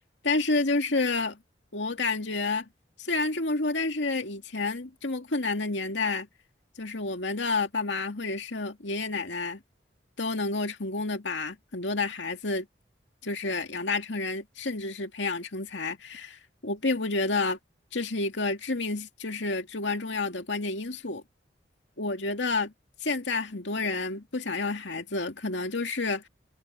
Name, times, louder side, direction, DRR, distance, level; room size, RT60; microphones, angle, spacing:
voice 1, 0.2-1.4 1.7-2.7 3.0-6.3 6.8-9.6 10.2-12.7 13.2-17.6 17.9-21.2 22.0-22.7 23.0-26.3, left 3 dB, 85° left, 2.2 m, -29 dB
head